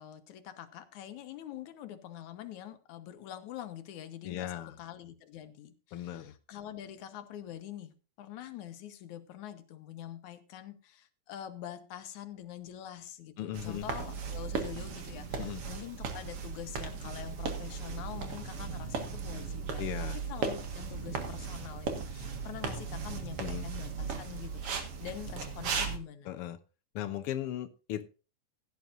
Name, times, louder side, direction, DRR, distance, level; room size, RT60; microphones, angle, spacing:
voice 1, 0.0-26.3, left 11 dB, 75° left, 10 dB, 2.4 m, -45 dB
voice 2, 4.2-4.7 5.9-6.3 13.4-13.9 15.4-15.6 19.8-20.2 23.4-23.6 26.2-26.6 26.9-28.0, left 12 dB, 90° left, 10 dB, 1.2 m, -37 dB
sound 1, 13.5-26.0, right 5 dB, 55° right, 2.3 m, -37 dB
16.0 x 11.0 x 2.6 m, 0.33 s
omnidirectional pair, 3.6 m